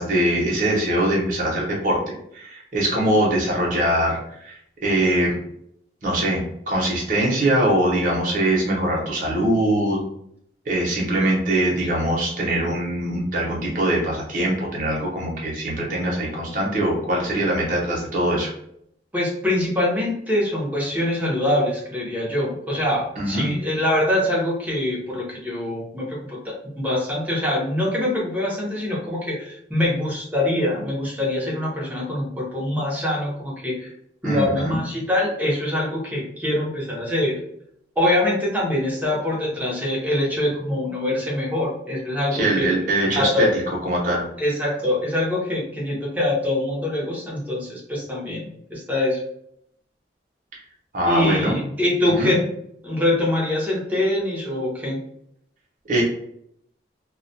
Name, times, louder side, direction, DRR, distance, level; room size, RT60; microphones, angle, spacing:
voice 1, 0.0-4.6 4.8-5.3 6.0-10.0 10.7-18.5 23.2-23.5 34.2-34.8 42.3-43.5 43.9-44.2 50.9-51.6 52.2-52.3 55.9-56.0, right 1 dB, 50° right, -2 dB, 0.8 m, -22 dB
voice 2, 19.1-26.4 26.6-33.9 34.2-37.4 38.0-42.7 43.1-43.5 44.4-49.2 51.0-52.4 52.8-55.0, left 1 dB, 10° right, -4 dB, 0.7 m, -24 dB
2.2 x 2.1 x 2.6 m, 0.71 s
head